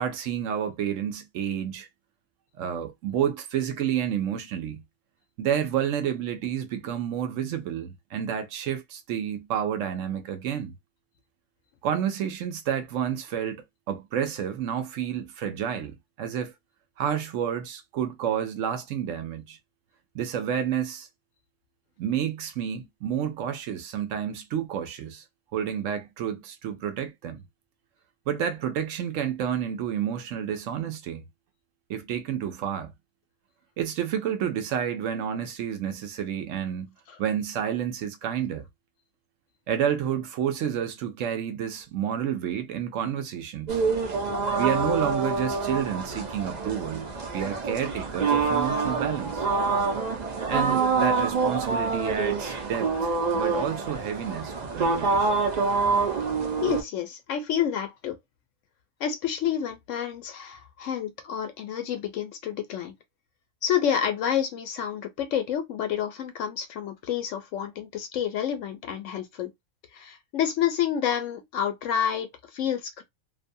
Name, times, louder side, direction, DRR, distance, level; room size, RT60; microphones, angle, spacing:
voice 1, 0.0-1.9 2.6-4.8 5.4-10.7 11.8-16.5 17.0-19.6 20.1-21.1 22.0-25.2 25.5-27.4 28.3-31.2 31.9-32.9 33.8-36.9 37.2-38.7 39.7-43.8 44.6-47.1 47.3-49.5 50.5-55.4, right 9 dB, 70° right, 0.9 m, -30 dB
sound 1, 43.7-56.8, right 4 dB, 45° right, 0.6 m, -26 dB
voice 2, 56.6-58.2 59.0-62.9 63.6-69.5 69.9-73.0, left 9 dB, 70° left, 0.9 m, -29 dB
2.6 x 2.2 x 2.6 m
omnidirectional pair, 1.5 m